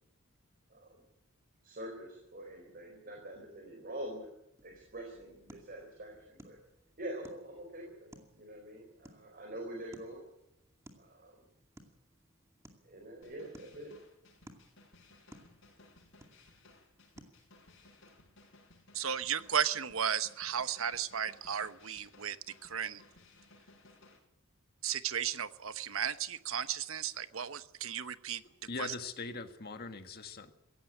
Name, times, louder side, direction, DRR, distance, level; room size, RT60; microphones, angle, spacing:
voice 1, 1.6-4.3 4.6-6.6 7.0-10.3 11.0-11.4 12.8-13.9, right 1 dB, 45° right, 4.5 m, -45 dB
sound 1, 4.6-18.0, right 1 dB, 15° right, 2.3 m, -60 dB
sound 2, 13.2-24.2, left 2 dB, 60° left, 7.4 m, -61 dB
voice 2, 18.9-22.4 22.6-23.0 24.8-28.4 28.8-28.9, right 8 dB, 70° right, 1.0 m, -34 dB
voice 3, 28.7-30.5, left 4 dB, 45° left, 1.7 m, -41 dB
17.0 x 16.0 x 9.9 m
head